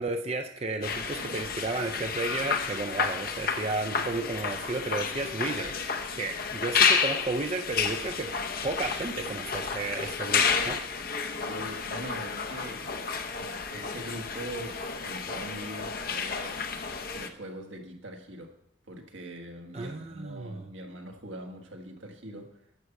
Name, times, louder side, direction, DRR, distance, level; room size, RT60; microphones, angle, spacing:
voice 1, 0.0-8.3 8.6-10.8 19.7-20.6, right 3 dB, 30° right, 5 dB, 0.5 m, -33 dB
sound 1, 0.8-17.3, left 6 dB, 50° left, 0.7 m, -31 dB
voice 2, 11.2-13.0 13.3-16.6 17.1-18.5 18.8-22.6, right 1 dB, 85° right, 2 dB, 1.6 m, -42 dB
11.0 x 5.7 x 6.9 m, 0.80 s
head